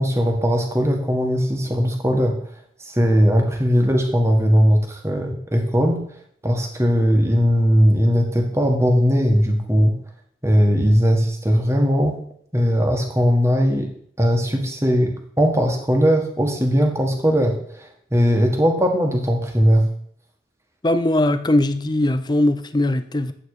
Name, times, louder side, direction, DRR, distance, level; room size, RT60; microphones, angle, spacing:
voice 1, 0.0-2.3 2.8-6.0 6.4-10.0 10.4-12.2 12.5-13.9 14.2-19.9, equal, 15° right, 2 dB, 1.6 m, -19 dB
voice 2, 20.8-23.3, left 1 dB, 25° left, 10 dB, 0.6 m, -20 dB
9.2 x 8.2 x 4.9 m, 0.63 s
head